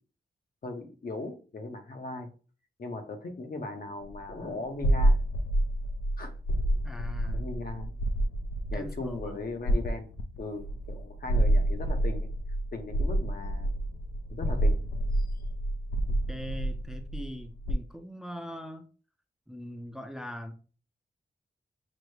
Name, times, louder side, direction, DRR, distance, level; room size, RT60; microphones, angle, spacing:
voice 1, 0.6-2.3 2.8-5.2 6.2-6.3 7.3-7.9 8.7-10.1 10.4-12.3 12.7-13.7 14.3-14.9 15.1-15.3, left 2 dB, 55° left, 0.8 m, -38 dB
sound 1, 4.1-4.4 4.8-17.7, right 1 dB, 85° left, 0.5 m, -28 dB
voice 2, 6.8-7.5 8.7-9.4 16.3-18.9 19.5-20.5, equal, 5° right, 0.5 m, -41 dB
6.0 x 2.1 x 3.2 m
wide cardioid pair, 90°, 18 cm